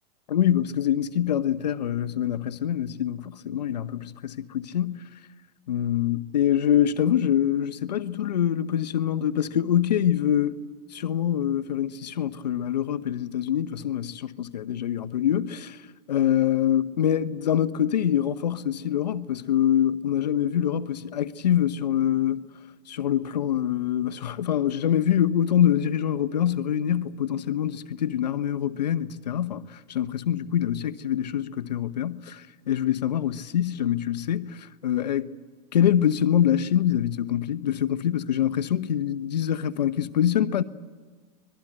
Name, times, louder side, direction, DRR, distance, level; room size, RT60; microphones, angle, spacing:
voice 1, 0.3-5.0 5.7-10.6 10.9-15.8 16.1-22.5 22.9-35.3 35.7-40.6, left 10 dB, 85° left, 1.0 m, -25 dB
24.5 x 20.0 x 8.9 m
hypercardioid pair, 110°, 21 cm